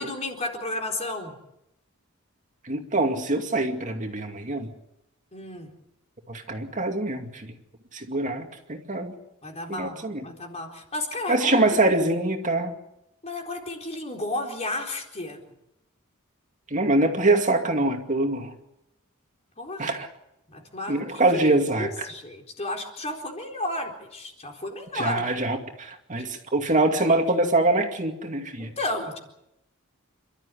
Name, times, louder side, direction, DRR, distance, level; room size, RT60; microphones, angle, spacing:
voice 1, 0.0-1.4 5.3-5.7 9.4-12.0 13.2-15.4 19.6-20.0 20.5-21.0 21.4-25.3 26.1-26.3 28.6-29.2, left 2 dB, 30° left, 2 dB, 4.1 m, -33 dB
voice 2, 2.6-4.7 6.3-7.5 7.9-9.1 9.7-10.2 11.3-12.7 16.7-18.5 19.8-20.1 20.9-22.1 24.9-28.7, right 2 dB, 35° right, 4 dB, 2.4 m, -24 dB
29.0 x 13.0 x 9.9 m, 0.86 s
head